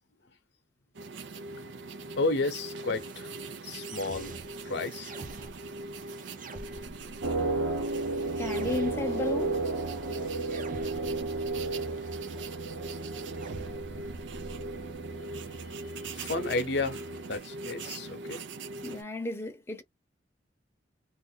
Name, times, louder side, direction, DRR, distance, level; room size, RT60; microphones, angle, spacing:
sound 1, 0.9-19.0, right 2 dB, 85° right, 0.6 m, -42 dB
voice 1, 2.2-3.3 3.6-4.3 4.7-5.1 16.2-18.5, left 3 dB, 65° left, 0.7 m, -32 dB
sound 2, 2.9-14.9, right 3 dB, 50° right, 0.7 m, -48 dB
sound 3, 7.2-17.4, right 2 dB, 70° right, 1.1 m, -34 dB
voice 2, 7.5-8.0 8.4-9.7 18.8-19.8, left 2 dB, 15° left, 0.7 m, -35 dB
2.5 x 2.5 x 3.7 m
head